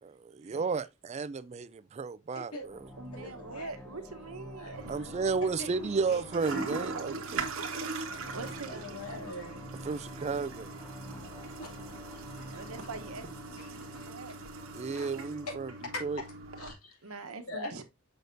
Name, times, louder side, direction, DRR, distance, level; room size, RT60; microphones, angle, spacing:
voice 1, 0.0-2.8 4.9-7.6 9.8-10.7 14.7-15.7 16.0-16.2, right 4 dB, 30° right, 0.3 m, -33 dB
voice 2, 2.3-2.6 3.1-5.2 5.6-6.7 8.7-9.7 11.6-12.7 13.6-14.1 14.9-15.1 15.5-16.2 16.6-17.1 17.5-17.7, left 2 dB, 85° left, 2.6 m, -44 dB
sound 1, 2.6-15.9, equal, 5° left, 1.9 m, -49 dB
voice 3, 3.0-5.0 8.2-9.3 12.5-14.3 17.0-17.8, right 3 dB, 85° right, 1.0 m, -44 dB
Toilet flush, 4.7-16.7, right 3 dB, 65° right, 1.3 m, -41 dB
6.4 x 6.3 x 2.6 m
head